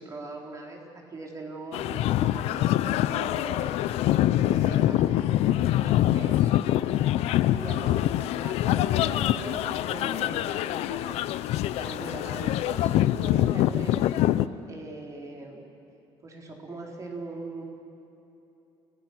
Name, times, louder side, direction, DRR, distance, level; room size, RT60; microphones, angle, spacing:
voice 1, 0.0-3.8 4.4-6.5 6.8-6.9 7.5-11.2 11.8-13.9 14.7-15.6 16.2-17.6, right 2 dB, 30° right, 0 dB, 4.1 m, -41 dB
sound 1, 1.7-14.5, left 13 dB, 75° left, 0.7 m, -25 dB
29.5 x 17.5 x 6.3 m, 3.0 s
cardioid pair, 120°, 11 cm